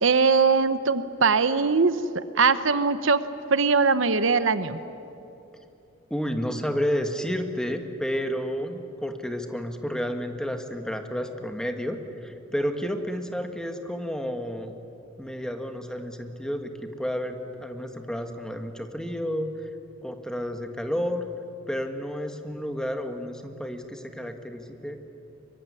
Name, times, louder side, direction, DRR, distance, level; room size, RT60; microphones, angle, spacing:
voice 1, 0.0-2.0 2.4-3.2 3.5-4.8, right 4 dB, 70° right, 12 dB, 0.9 m, -21 dB
voice 2, 6.1-14.7 15.2-19.5 20.0-21.2 21.7-25.0, equal, 5° left, 6 dB, 1.6 m, -31 dB
23.5 x 23.5 x 9.8 m, 2.8 s
head